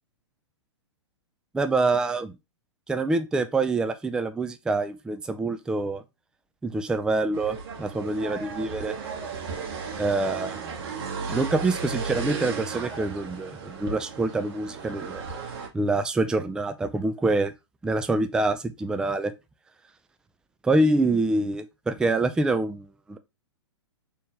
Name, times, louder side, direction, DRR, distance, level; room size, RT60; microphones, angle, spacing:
voice 1, 1.5-2.3 2.9-6.0 6.6-8.9 10.0-10.6 11.3-15.3 15.7-17.5 17.8-19.3 20.6-23.2, right 2 dB, 5° right, 0.4 m, -26 dB
sound 1, 7.3-15.7, right 5 dB, 55° right, 1.7 m, -35 dB
4.2 x 3.5 x 3.1 m
hypercardioid pair, 115°, 15 cm